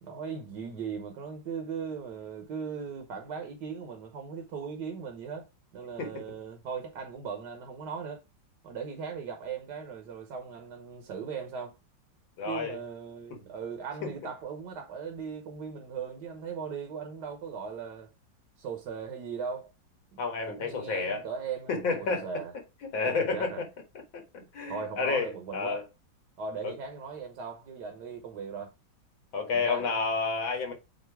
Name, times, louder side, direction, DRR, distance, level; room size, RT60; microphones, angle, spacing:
voice 1, 0.0-8.2 8.6-11.7 12.4-18.1 18.6-19.7 20.1-22.5 23.0-23.6 24.7-25.8 26.4-28.7 29.5-29.9, right 6 dB, 65° right, 1.6 m, -38 dB
voice 2, 12.4-12.8 13.3-13.5 14.0-14.1 20.2-21.2 21.7-22.2 22.9-23.7 24.1-25.8 26.6-26.7 29.3-30.7, left 4 dB, 85° left, 2.4 m, -30 dB
7.9 x 2.8 x 4.7 m
omnidirectional pair, 2.1 m